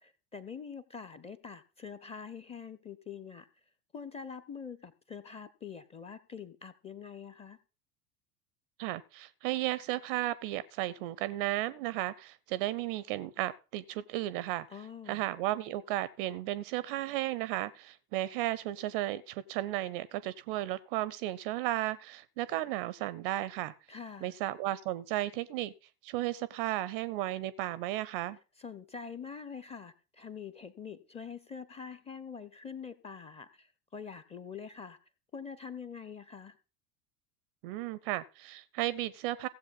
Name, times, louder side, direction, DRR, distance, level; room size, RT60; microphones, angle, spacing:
voice 1, 0.0-3.5 3.9-7.6 14.7-15.2 23.9-24.3 28.6-35.0 35.3-36.6, left 6 dB, 15° left, 0.5 m, -45 dB
voice 2, 8.8-14.7 15.1-23.7 24.2-25.7 26.0-28.4 37.6-39.5, right 15 dB, 35° right, 0.4 m, -34 dB
16.0 x 7.4 x 4.0 m
figure-of-eight pair, 75°, 49 cm